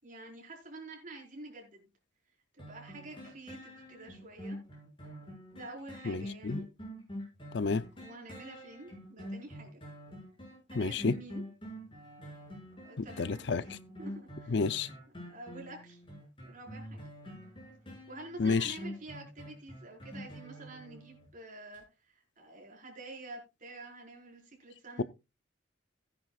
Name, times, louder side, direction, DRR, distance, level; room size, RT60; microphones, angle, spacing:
voice 1, 0.0-1.9 2.6-4.6 5.5-6.6 8.0-9.8 10.7-11.4 12.7-13.5 14.0-14.6 15.2-16.0 16.4-17.0 18.1-25.0, right 2 dB, 45° right, 5.0 m, -48 dB
sound 1, 2.6-21.3 21.7-21.8, equal, 30° left, 6.2 m, -46 dB
voice 2, 6.1-6.6 7.5-7.8 10.7-11.2 13.0-13.8 14.5-14.9 18.4-18.7, left 4 dB, 65° left, 0.6 m, -30 dB
16.5 x 10.0 x 2.4 m
head